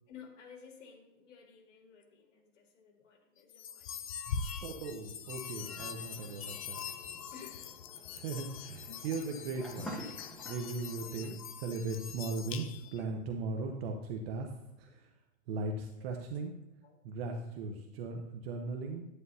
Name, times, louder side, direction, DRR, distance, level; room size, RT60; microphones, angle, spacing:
voice 1, 0.1-4.1 6.0-6.2 7.3-7.8 10.0-10.2 11.0-11.2 11.7-11.8 12.8-13.1 14.9-15.0 16.0-16.1 16.8-17.0 17.7-17.8, left 6 dB, 70° left, 2 dB, 2.3 m, -56 dB
sound 1, 3.5-13.0, left 7 dB, 30° left, 0.3 m, -43 dB
voice 2, 4.6-6.8 8.1-10.0 10.5-12.6 12.9-14.5 14.8-15.1 15.5-16.5 17.0-19.1, right 3 dB, 50° right, 3 dB, 1.0 m, -38 dB
sound 2, 5.5-11.4, right 1 dB, ahead, 0.8 m, -49 dB
9.9 x 9.3 x 2.8 m, 0.92 s
hypercardioid pair, 150°, 39 cm